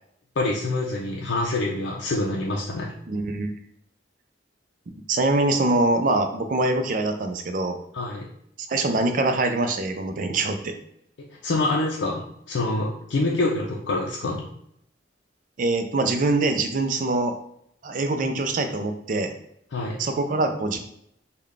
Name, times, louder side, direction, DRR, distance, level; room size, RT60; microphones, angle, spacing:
voice 1, 0.4-2.9 7.9-8.2 11.4-14.4 19.7-20.0, left 2 dB, 75° left, -3 dB, 0.5 m, -26 dB
voice 2, 3.1-3.5 5.1-7.8 8.7-10.7 15.6-17.4 17.8-19.3 20.0-20.8, right 2 dB, 45° right, 6 dB, 0.4 m, -24 dB
3.8 x 2.2 x 3.2 m, 0.73 s
head